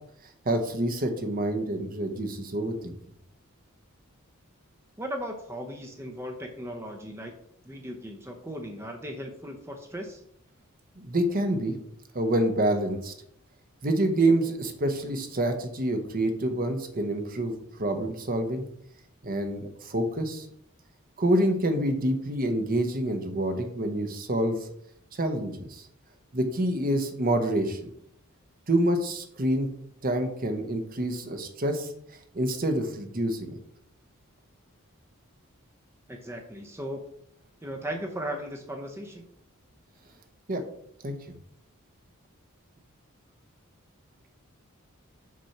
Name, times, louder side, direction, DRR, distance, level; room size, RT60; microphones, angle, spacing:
voice 1, 0.4-2.9 11.0-11.8 12.1-13.1 13.8-18.6 19.2-20.5 21.2-24.6 25.1-25.8 26.3-27.9 28.7-29.7 30.0-31.9 32.3-33.6 40.5-40.6 41.0-41.1, right 1 dB, 40° right, 6 dB, 0.9 m, -27 dB
voice 2, 5.0-7.3 7.7-10.2 36.1-37.0 37.6-39.2, equal, 10° right, 2 dB, 0.7 m, -37 dB
6.2 x 4.2 x 5.8 m, 0.73 s
head